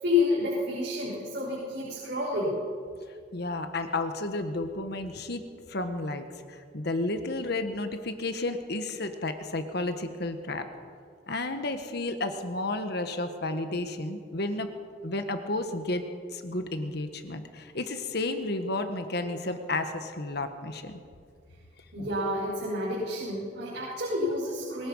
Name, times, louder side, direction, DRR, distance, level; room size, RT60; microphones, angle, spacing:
voice 1, 0.0-2.6 21.9-24.9, left 2 dB, 65° right, -6 dB, 5.9 m, -29 dB
voice 2, 3.3-5.4 5.7-10.7 11.3-14.7 15.0-16.0 16.3-20.9, left 2 dB, 65° left, 7 dB, 1.5 m, -32 dB
23.5 x 19.5 x 5.6 m, 2.2 s
head